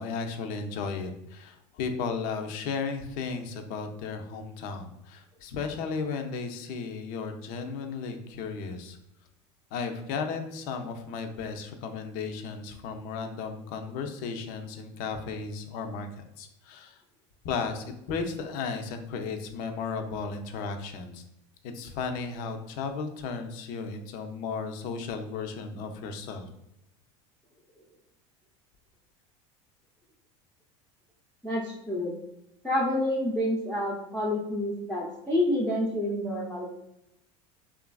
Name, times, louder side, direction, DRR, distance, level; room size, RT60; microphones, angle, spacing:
voice 1, 0.0-9.0 9.7-17.0 17.4-21.2 21.7-26.5, left 5 dB, 60° left, 6 dB, 0.5 m, -35 dB
voice 2, 31.4-32.1 32.6-36.7, left 1 dB, 5° left, -5 dB, 0.5 m, -28 dB
3.1 x 2.4 x 2.2 m, 0.84 s
supercardioid pair, 110°, 16 cm